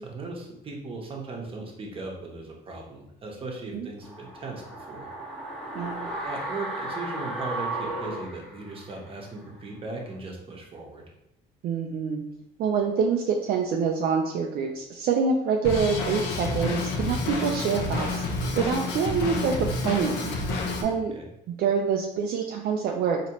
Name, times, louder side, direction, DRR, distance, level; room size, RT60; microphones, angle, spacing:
voice 1, 0.0-5.1 6.2-11.0 21.1-21.3, right 3 dB, 30° right, -1 dB, 1.0 m, -38 dB
sound 1, 4.0-9.2 9.5-9.6, right 2 dB, ahead, 1.0 m, -35 dB
voice 2, 5.7-6.1 11.6-12.2 12.6-18.2 18.5-20.3 20.8-21.1 21.6-23.2, right 6 dB, 65° right, 1 dB, 0.5 m, -26 dB
Drum kit, 15.6-20.8, left 3 dB, 90° left, 0.7 m, -29 dB
4.1 x 2.9 x 3.0 m, 0.82 s
cardioid pair, 110°, 17 cm